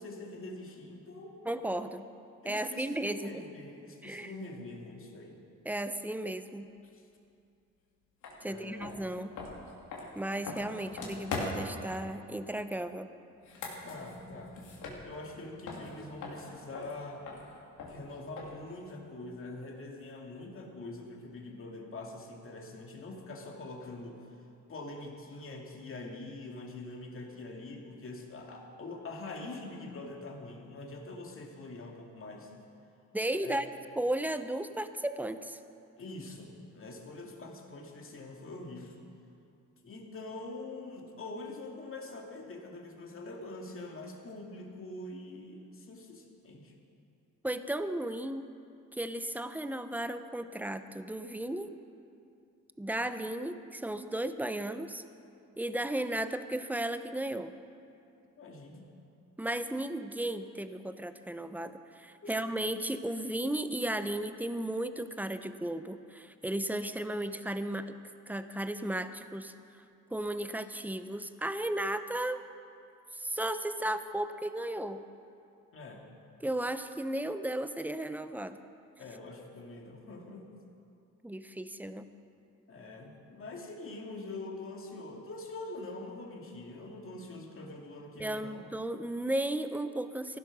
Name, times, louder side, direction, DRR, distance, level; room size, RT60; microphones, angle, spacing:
voice 1, 0.0-1.4 2.4-5.4 6.9-7.0 8.4-8.9 13.8-14.5 15.0-17.3 17.9-24.2 24.7-32.5 33.4-33.6 36.0-39.0 39.8-46.7 58.4-58.9 62.2-62.3 75.7-76.0 79.0-80.5 82.7-88.6, left 2 dB, 45° left, 1 dB, 2.4 m, -44 dB
voice 2, 1.4-2.0 2.4-3.3 4.0-4.3 5.6-6.7 8.4-9.4 10.1-13.1 33.1-33.7 34.0-35.6 47.4-48.5 48.9-51.7 52.8-55.0 55.6-57.5 59.4-68.0 68.3-69.5 70.1-72.4 73.1-75.0 76.4-78.6 81.2-82.1 88.2-90.4, right 1 dB, 5° right, 10 dB, 0.7 m, -35 dB
sound 1, 8.2-8.4 8.8-11.8 13.3-15.4 15.7-18.7, left 3 dB, 80° left, 2.8 m, -41 dB
15.0 x 12.0 x 6.1 m, 2.6 s
cardioid pair, 90°, 30 cm